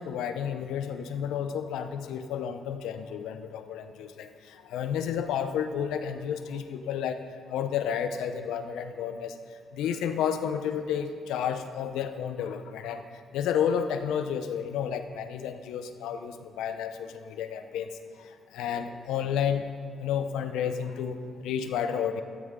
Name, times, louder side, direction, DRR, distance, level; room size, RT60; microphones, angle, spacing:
voice 1, 0.0-7.2 7.5-9.4 9.7-13.0 13.3-17.9 18.2-19.7 20.0-22.2, left 8 dB, 90° left, 8 dB, 0.7 m, -31 dB
13.5 x 13.5 x 3.7 m, 2.1 s
cardioid pair, 100°, 0 cm